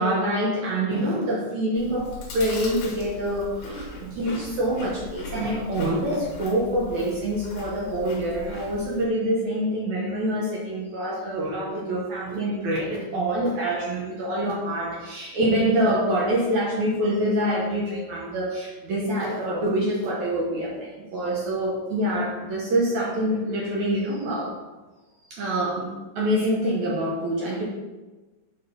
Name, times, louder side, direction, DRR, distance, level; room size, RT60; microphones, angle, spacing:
voice 1, 0.0-24.5 25.3-25.9 26.1-27.6, right 1 dB, 75° right, -4 dB, 1.7 m, -26 dB
Chewing mastication, 1.7-9.0, left 4 dB, 55° left, 2.4 m, -39 dB
6.4 x 5.9 x 5.2 m, 1.2 s
omnidirectional pair, 5.1 m